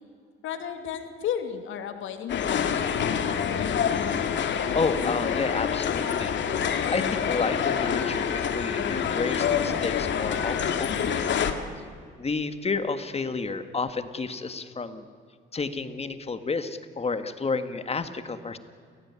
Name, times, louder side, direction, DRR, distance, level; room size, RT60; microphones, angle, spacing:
voice 1, 0.4-2.8, left 8 dB, 80° left, 7 dB, 2.7 m, -33 dB
sound 1, 2.3-11.5, left 7 dB, 65° left, 2.1 m, -26 dB
voice 2, 4.7-11.3 12.2-15.0 15.5-18.6, left 4 dB, 30° left, 10 dB, 1.9 m, -31 dB
29.0 x 17.5 x 9.7 m, 2.2 s
cardioid pair, 90°, 20 cm